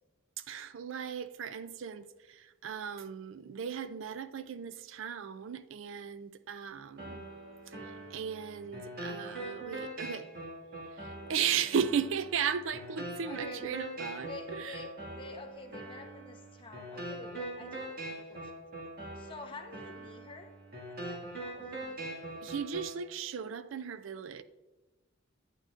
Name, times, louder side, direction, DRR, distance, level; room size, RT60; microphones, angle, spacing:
voice 1, 0.4-7.3 7.7-10.3 10.9-14.8 22.4-24.4, right 7 dB, 70° right, 0.4 m, -36 dB
sound 1, 7.0-23.0, right 1 dB, 50° right, 2.1 m, -43 dB
voice 2, 13.3-13.6 14.2-18.6 19.1-20.5 20.9-22.2, left 3 dB, 25° left, 1.0 m, -49 dB
10.5 x 8.9 x 2.5 m
head